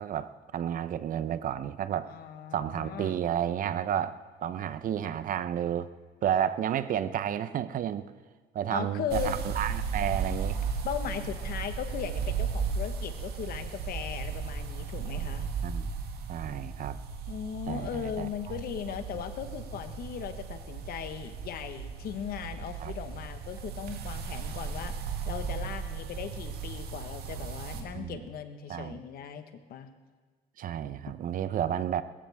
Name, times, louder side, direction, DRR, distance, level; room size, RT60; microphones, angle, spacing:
voice 1, 0.0-2.1 2.5-5.9 6.2-8.1 8.5-10.6 15.6-15.9 16.3-17.0 17.7-18.6 22.8-22.9 27.9-28.2 28.7-29.0 30.6-32.0, right 10 dB, 55° right, 13 dB, 0.8 m, -31 dB
voice 2, 2.0-3.2 8.7-9.4 10.8-15.5 17.3-25.0 25.3-29.9, left 9 dB, 65° left, 8 dB, 1.3 m, -38 dB
sound 1, 9.1-27.8, right 6 dB, 70° right, 1.9 m, -35 dB
20.0 x 15.0 x 3.6 m, 1.4 s
cardioid pair, 110°, 17 cm